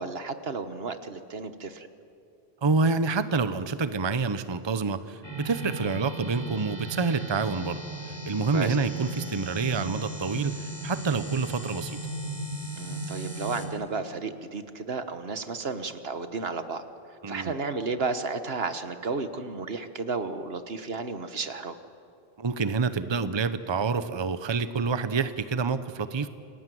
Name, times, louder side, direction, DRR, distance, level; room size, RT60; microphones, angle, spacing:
voice 1, 0.0-1.9 8.5-8.8 12.8-16.8 17.3-21.7, right 4 dB, 75° right, 10 dB, 1.5 m, -33 dB
voice 2, 2.6-7.8 8.1-12.0 17.2-17.5 22.4-26.3, right 4 dB, 30° right, 12 dB, 0.8 m, -27 dB
sound 1, 5.2-13.7, right 2 dB, 25° left, 3.5 m, -36 dB
28.0 x 19.5 x 9.3 m, 2.5 s
omnidirectional pair, 1.0 m